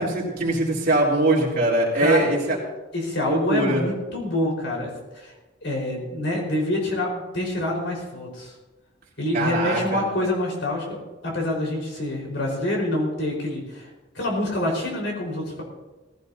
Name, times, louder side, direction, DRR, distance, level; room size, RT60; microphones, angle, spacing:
voice 1, 0.0-2.6 3.3-3.8 9.3-10.1, right 2 dB, 50° right, -4 dB, 3.6 m, -22 dB
voice 2, 2.0-2.6 2.9-5.3 5.6-8.5 9.2-13.9 14.1-15.6, left 1 dB, 70° left, -2 dB, 4.8 m, -26 dB
18.5 x 15.5 x 2.8 m, 1.1 s
head